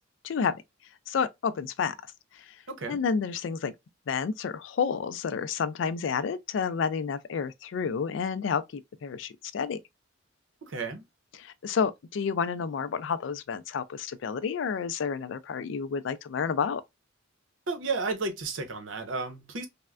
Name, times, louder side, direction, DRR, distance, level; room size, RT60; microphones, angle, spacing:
voice 1, 1.1-1.9 2.9-3.7 4.1-9.8 11.3-16.8, left 6 dB, 70° left, 0.3 m, -30 dB
voice 2, 2.7-3.0 10.6-11.1 17.7-19.7, right 3 dB, 80° right, 0.7 m, -32 dB
3.3 x 2.1 x 2.3 m
head